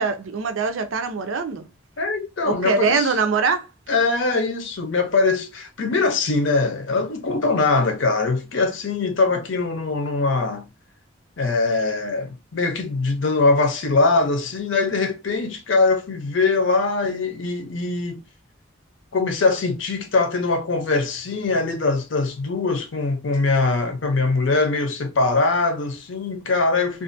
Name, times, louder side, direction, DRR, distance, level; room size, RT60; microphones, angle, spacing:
voice 1, 0.0-1.7 2.4-3.7, right 4 dB, 80° right, 0.5 m, -23 dB
voice 2, 2.0-3.1 3.9-10.6 11.4-18.2 19.1-27.0, left 3 dB, 70° left, 0.6 m, -22 dB
2.5 x 2.4 x 2.5 m
head